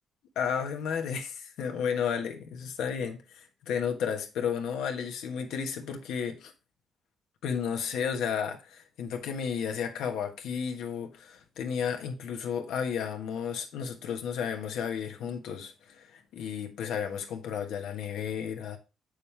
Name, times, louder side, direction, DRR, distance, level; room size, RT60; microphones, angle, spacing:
voice 1, 0.3-6.5 7.4-18.8, left 7 dB, 85° left, 1.3 m, -33 dB
7.3 x 6.5 x 3.3 m
cardioid pair, 90°, 0 cm